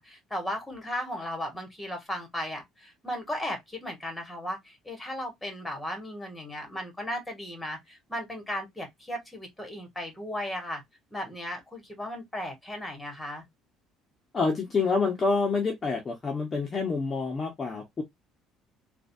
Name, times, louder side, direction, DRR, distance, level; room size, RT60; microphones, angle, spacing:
voice 1, 0.0-10.8 11.1-13.4, left 1 dB, 5° left, 1.9 m, -36 dB
voice 2, 14.3-18.0, left 4 dB, 25° left, 1.0 m, -27 dB
4.0 x 2.5 x 2.6 m
cardioid pair, 120°, 0 cm